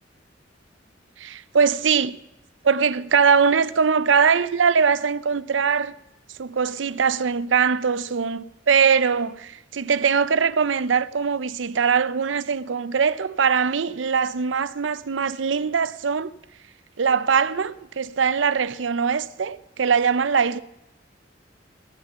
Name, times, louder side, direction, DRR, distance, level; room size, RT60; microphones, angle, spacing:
voice 1, 1.2-2.2 2.6-5.9 6.4-16.3 17.0-20.6, right 6 dB, 90° right, 0.6 m, -21 dB
18.5 x 6.7 x 6.9 m
head